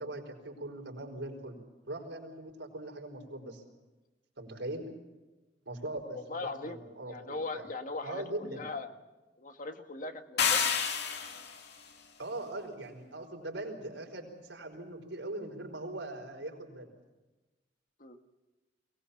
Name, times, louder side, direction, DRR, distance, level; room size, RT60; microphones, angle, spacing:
voice 1, 0.0-1.6 1.9-3.6 4.4-4.9 5.6-7.7 8.0-8.6 12.2-16.9, right 1 dB, 85° right, 2 dB, 5.1 m, -41 dB
voice 2, 6.3-6.8 7.1-8.9 9.4-10.6 18.0-18.2, left 3 dB, 45° left, 7 dB, 1.7 m, -39 dB
sound 1, 10.4-11.6, left 6 dB, 65° left, 2.7 m, -29 dB
22.5 x 20.0 x 7.1 m, 1.1 s
head